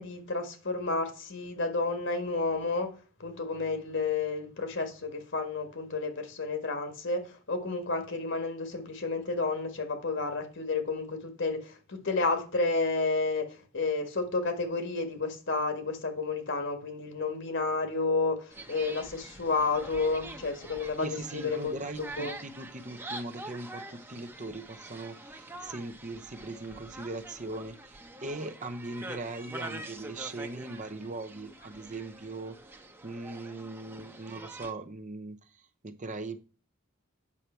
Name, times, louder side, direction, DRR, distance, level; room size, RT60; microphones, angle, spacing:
voice 1, 0.0-2.9 3.2-22.3, left 3 dB, 60° left, 1.8 m, -31 dB
sound 1, 18.5-34.7, right 2 dB, 10° right, 0.9 m, -45 dB
voice 2, 21.0-32.6 33.0-35.4 35.8-36.4, right 2 dB, 35° right, 0.8 m, -40 dB
8.6 x 6.5 x 4.4 m
head